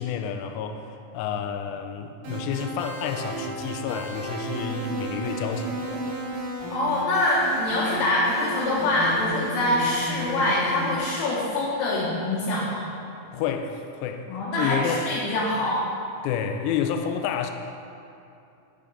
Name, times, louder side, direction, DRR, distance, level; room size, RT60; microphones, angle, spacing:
voice 1, 0.0-6.1 13.3-14.3 14.6-15.0 16.2-17.5, left 7 dB, 90° left, 6 dB, 2.5 m, -29 dB
sound 1, 2.2-11.0, right 1 dB, 70° right, 4.4 m, -33 dB
voice 2, 6.7-12.9 14.3-15.9, left 2 dB, 70° left, -7 dB, 2.7 m, -24 dB
9.1 x 5.1 x 5.3 m, 2.7 s
omnidirectional pair, 5.6 m